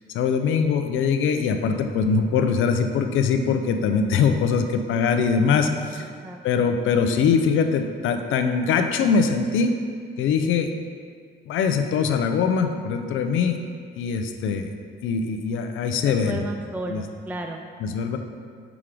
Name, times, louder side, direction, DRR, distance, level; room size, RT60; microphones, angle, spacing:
voice 1, 0.1-6.1 6.4-9.7 10.2-10.7 11.5-13.6 14.0-14.7 15.0-16.5 16.9-17.0 17.8-18.2, left 6 dB, 80° left, 6 dB, 0.5 m, -22 dB
voice 2, 6.2-6.7 16.0-17.6, right 2 dB, 10° right, 3 dB, 0.3 m, -34 dB
5.9 x 3.7 x 4.9 m, 2.1 s
cardioid pair, 90°, 20 cm